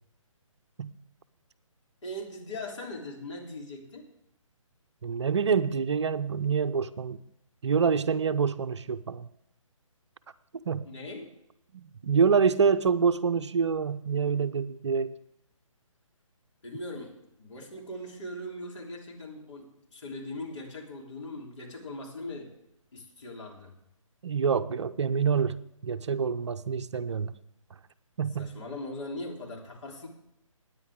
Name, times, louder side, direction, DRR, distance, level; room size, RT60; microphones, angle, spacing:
voice 1, 2.0-4.0 10.8-11.3 16.6-22.5 22.9-23.7 28.4-30.1, left 1 dB, 60° left, -1 dB, 3.2 m, -40 dB
voice 2, 5.0-7.2 7.6-9.3 10.5-10.9 11.7-15.1 24.2-27.3 28.2-28.5, right 6 dB, 55° right, 12 dB, 0.6 m, -26 dB
17.0 x 9.6 x 3.6 m, 0.82 s
figure-of-eight pair, 145°, 17 cm